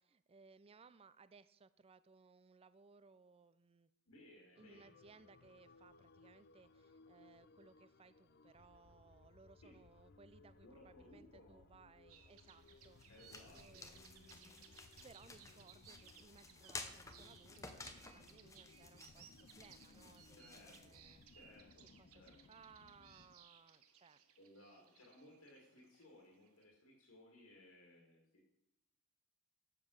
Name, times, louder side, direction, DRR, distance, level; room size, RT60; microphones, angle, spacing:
voice 1, 0.0-3.9 4.6-21.2 22.0-24.2, right 4 dB, 25° right, 15 dB, 0.4 m, -64 dB
voice 2, 4.1-4.9 9.6-9.8 10.6-11.6 13.1-13.9 20.4-21.0 21.3-21.9 22.1-22.3 24.4-28.4, left 1 dB, 75° left, -2 dB, 2.0 m, -62 dB
sound 1, 4.6-23.4, left 3 dB, 45° left, 0.5 m, -65 dB
sound 2, 12.1-26.6, right 8 dB, 80° right, 0.9 m, -64 dB
sound 3, 12.6-21.6, left 3 dB, 15° left, 0.7 m, -55 dB
7.4 x 7.0 x 6.3 m, 0.82 s
head